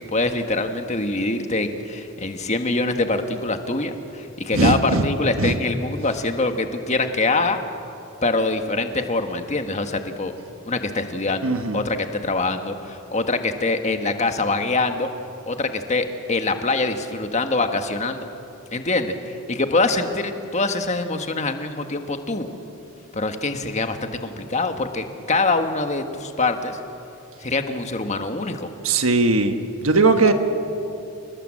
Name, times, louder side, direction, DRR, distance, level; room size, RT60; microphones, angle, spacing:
voice 1, 0.0-7.6 8.2-10.3 10.6-15.1 15.5-18.3 18.7-22.5 23.1-26.8 27.4-28.7, left 3 dB, 35° left, 6 dB, 1.5 m, -24 dB
voice 2, 4.5-5.0 5.4-5.5 11.4-11.8 28.8-29.6 29.8-30.3, right 3 dB, 80° right, 7 dB, 1.3 m, -18 dB
29.5 x 19.0 x 7.6 m, 2.8 s
head